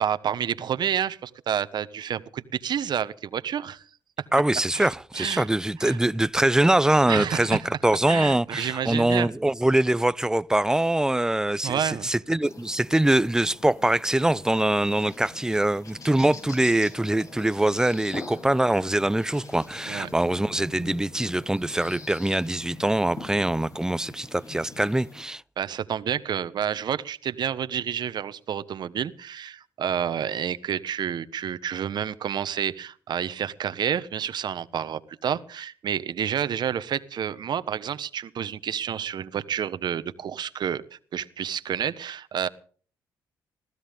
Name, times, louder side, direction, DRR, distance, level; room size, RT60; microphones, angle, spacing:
voice 1, 0.0-3.8 4.7-4.9 5.1-5.5 5.8-6.0 7.1-7.6 8.1-9.3 11.6-12.1 19.9-20.1 25.6-40.8 41.1-42.5, right 8 dB, 65° right, 1.3 m, -29 dB
voice 2, 4.3-25.4, right 1 dB, 10° right, 0.6 m, -23 dB
sound 1, 12.4-25.2, left 3 dB, 45° left, 5.3 m, -44 dB
22.0 x 15.0 x 3.7 m
cardioid pair, 70°, 8 cm